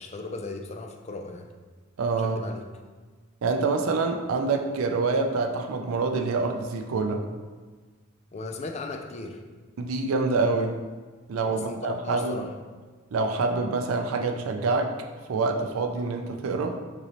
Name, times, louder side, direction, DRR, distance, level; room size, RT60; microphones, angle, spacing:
voice 1, 0.0-1.5 2.2-2.7 8.3-9.4 11.5-12.5, left 3 dB, 30° left, 4 dB, 0.4 m, -37 dB
voice 2, 2.0-2.4 3.4-7.2 9.8-10.8 11.3-12.4 13.1-14.9 15.3-16.8, right 3 dB, 80° right, 3 dB, 0.4 m, -26 dB
5.3 x 3.0 x 2.9 m, 1.4 s
head